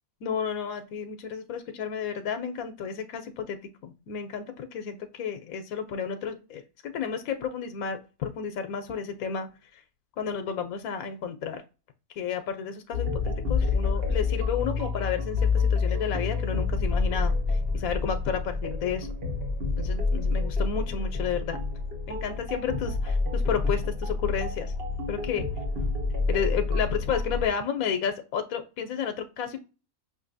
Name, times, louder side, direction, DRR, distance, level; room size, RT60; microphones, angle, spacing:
voice 1, 0.2-3.6 3.8-9.8 10.2-11.6 12.2-19.1 19.8-21.6 22.1-24.7 25.1-25.4 26.3-29.6, left 7 dB, 85° left, 7 dB, 1.0 m, -32 dB
sound 1, 12.9-27.5, left 4 dB, 50° right, 1.2 m, -28 dB
5.7 x 2.6 x 2.6 m, 0.33 s
omnidirectional pair, 1.4 m